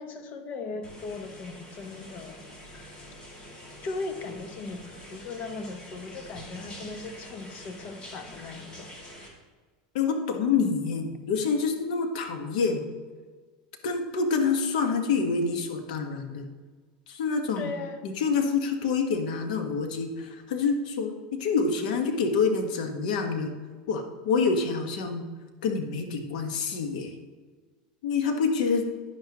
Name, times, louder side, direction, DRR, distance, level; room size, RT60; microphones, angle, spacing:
voice 1, 0.0-2.4 3.4-3.5 3.8-9.0 17.6-18.0, left 3 dB, 40° left, 7 dB, 1.0 m, -38 dB
sound 1, 0.8-9.3, equal, 25° left, 2.3 m, -46 dB
voice 2, 9.9-12.8 13.8-16.5 17.1-17.7 18.0-23.5 23.9-25.2 25.6-27.1 28.0-28.9, left 5 dB, 75° left, 5 dB, 1.4 m, -27 dB
10.5 x 9.7 x 3.0 m, 1.4 s
supercardioid pair, 140°, 4 cm